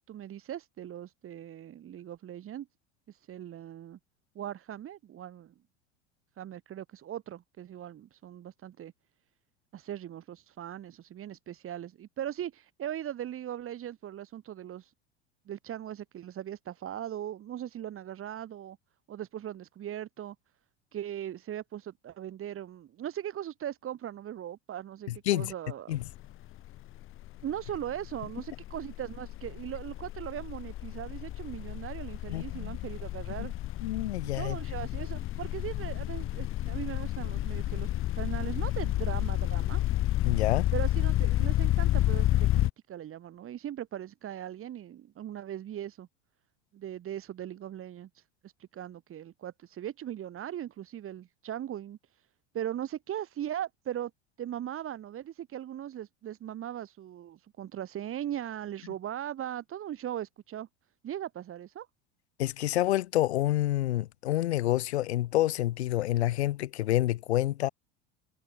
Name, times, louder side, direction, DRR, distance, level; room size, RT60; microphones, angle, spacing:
voice 1, 0.0-2.7 3.1-4.0 4.3-5.5 6.4-8.9 9.7-14.9 15.5-18.8 19.1-20.4 20.9-26.0 27.4-33.5 34.3-39.8 40.7-46.1 46.7-52.3 52.5-54.1 54.4-60.7 61.0-61.9, right 11 dB, 40° right, 7.5 m, -39 dB
voice 2, 25.1-25.5 25.9-26.0 32.3-32.7 33.8-34.6 40.2-40.7 62.4-67.7, left 14 dB, 75° left, 1.0 m, -28 dB
sound 1, 25.9-26.3 26.6-42.7, left 14 dB, 40° left, 1.0 m, -30 dB
hypercardioid pair, 80°, 33 cm